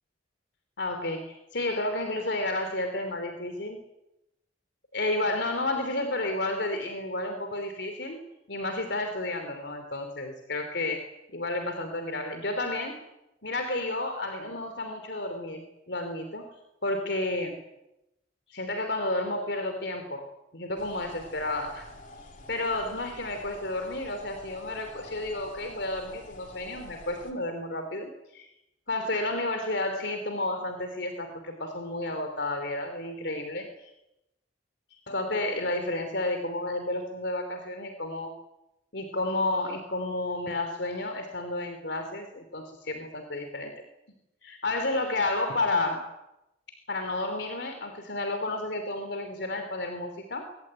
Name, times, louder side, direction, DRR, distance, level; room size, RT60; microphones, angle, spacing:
voice 1, 0.8-3.8 4.9-8.2 8.5-13.0 13.4-16.5 16.8-17.6 18.5-20.3 20.5-21.9 22.5-28.5 28.9-33.9 35.1-38.3 38.9-43.7 44.4-46.0 46.9-50.5, left 2 dB, 70° left, 6 dB, 3.2 m, -31 dB
sound 1, 20.8-27.3, left 2 dB, 45° left, 3.8 m, -48 dB
23.5 x 19.5 x 9.1 m, 0.90 s
head